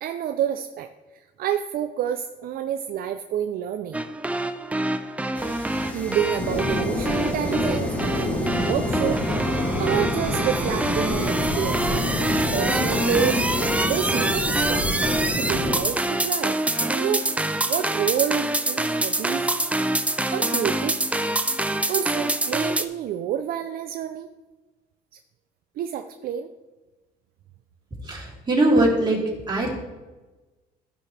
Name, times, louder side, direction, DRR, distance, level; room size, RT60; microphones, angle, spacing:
voice 1, 0.0-4.0 5.7-12.0 12.5-13.4 13.8-14.9 15.4-19.5 20.3-21.0 21.9-24.3 25.8-26.5, right 9 dB, 60° right, 8 dB, 0.5 m, -29 dB
sound 1, 3.9-22.9, right 1 dB, 10° right, 0.5 m, -26 dB
sound 2, 5.3-13.9, left 1 dB, 10° left, 1.2 m, -39 dB
sound 3, 6.4-15.8, left 1 dB, 40° left, 2.6 m, -27 dB
voice 2, 28.0-29.2 29.5-29.8, right 1 dB, 25° right, -5 dB, 3.1 m, -21 dB
14.5 x 5.9 x 3.3 m, 1.2 s
cardioid pair, 110°, 17 cm